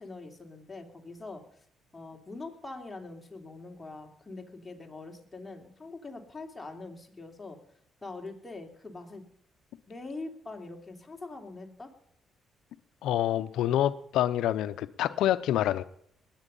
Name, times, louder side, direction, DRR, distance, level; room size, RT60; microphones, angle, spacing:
voice 1, 0.0-1.4 1.9-7.6 8.0-9.2 9.9-11.9, left 3 dB, 20° left, 3.0 m, -43 dB
voice 2, 13.0-15.8, left 12 dB, 85° left, 0.6 m, -27 dB
20.0 x 9.1 x 5.4 m
cardioid pair, 90°, 0 cm